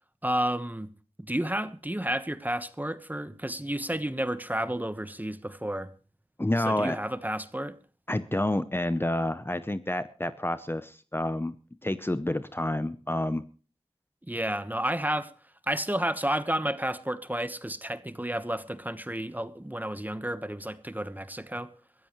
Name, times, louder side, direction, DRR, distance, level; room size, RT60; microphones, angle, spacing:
voice 1, 0.2-0.9 1.2-5.9 6.6-7.8 14.3-21.7, right 1 dB, 15° right, 1.2 m, -31 dB
voice 2, 6.4-7.0 8.1-11.6 11.8-13.4, left 1 dB, 20° left, 0.7 m, -29 dB
22.0 x 14.5 x 3.1 m
wide cardioid pair, 50°, 12 cm